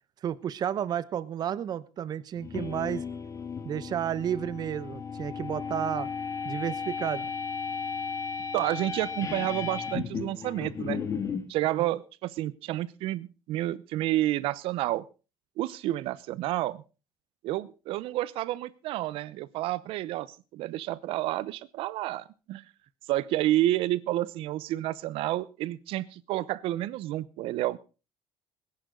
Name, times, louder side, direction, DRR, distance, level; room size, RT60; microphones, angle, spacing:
voice 1, 0.2-3.0 3.6-6.1 6.4-7.3 11.8-11.9, right 9 dB, 45° right, 18 dB, 0.9 m, -32 dB
sound 1, 2.4-11.5, left 5 dB, 30° left, 1.8 m, -35 dB
voice 2, 8.5-11.0 11.5-15.0 15.6-16.8 17.4-20.3 20.5-22.6 23.1-27.8, right 15 dB, 70° right, 19 dB, 0.9 m, -30 dB
20.5 x 11.0 x 3.9 m, 0.32 s
cardioid pair, 130°, 10 cm